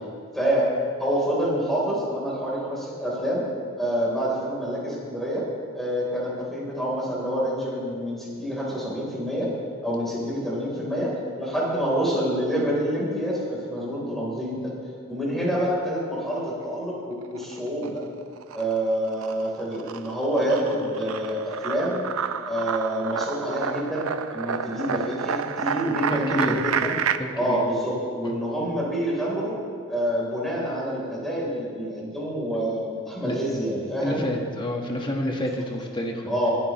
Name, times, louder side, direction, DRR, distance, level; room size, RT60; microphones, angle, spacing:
voice 1, 0.3-0.7 1.0-3.4 3.8-5.5 5.7-9.5 9.8-14.7 15.1-18.0 18.5-22.0 22.4-26.9 27.3-29.6 29.9-34.2 36.3-36.5, equal, ahead, -5 dB, 3.5 m, -27 dB
sound 1, 17.2-18.0 18.4-27.2, right 7 dB, 85° right, 0.5 m, -30 dB
voice 2, 26.1-26.6 27.2-27.6 33.2-33.3 34.0-36.3, left 1 dB, 20° left, 1 dB, 1.4 m, -28 dB
21.0 x 11.5 x 3.1 m, 2.2 s
head